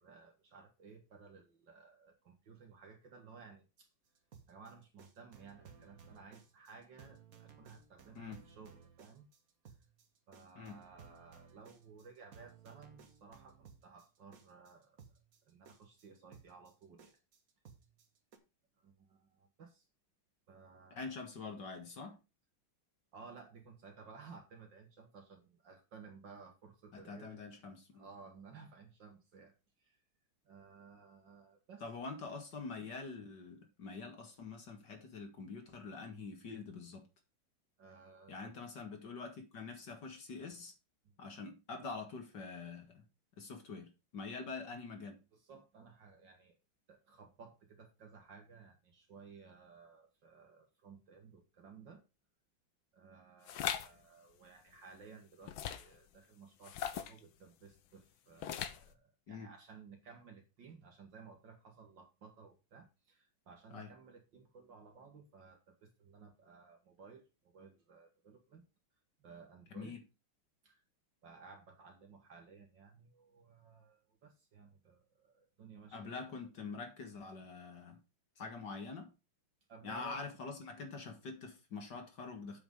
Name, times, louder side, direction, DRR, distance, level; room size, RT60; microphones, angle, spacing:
voice 1, 0.0-3.9 4.5-9.3 9.6-9.7 10.3-15.0 15.5-17.2 18.8-19.9 20.5-21.2 23.1-27.4 27.9-30.0 30.5-32.1 37.8-38.7 41.0-41.1 45.3-46.6 46.9-52.0 52.9-68.6 69.2-70.0 70.6-70.8 71.2-76.1 79.7-80.2, right 5 dB, 60° right, 2.2 m, -57 dB
sound 1, 4.1-18.4, right 6 dB, 45° right, 1.6 m, -59 dB
voice 2, 20.9-22.2 26.9-28.1 31.8-37.1 38.3-40.7 41.2-43.0 43.4-45.2 59.3-59.5 63.7-63.9 69.7-70.0 75.9-78.0 78.4-79.1 79.8-82.6, left 4 dB, 60° left, 2.3 m, -45 dB
sound 2, 53.5-53.9 55.5-56.0 56.6-57.2 58.4-58.9, left 9 dB, 75° left, 1.7 m, -39 dB
8.1 x 5.9 x 5.3 m
omnidirectional pair, 2.2 m